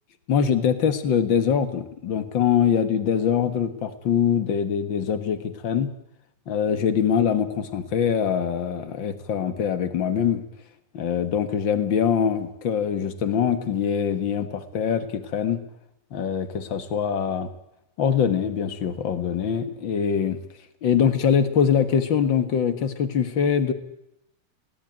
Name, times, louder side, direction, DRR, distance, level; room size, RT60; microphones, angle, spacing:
voice 1, 0.3-5.9 6.5-10.4 10.9-15.6 16.1-17.5 18.0-20.4 20.8-23.7, left 7 dB, 50° left, 10 dB, 1.6 m, -23 dB
21.0 x 18.0 x 9.2 m, 0.82 s
omnidirectional pair, 3.9 m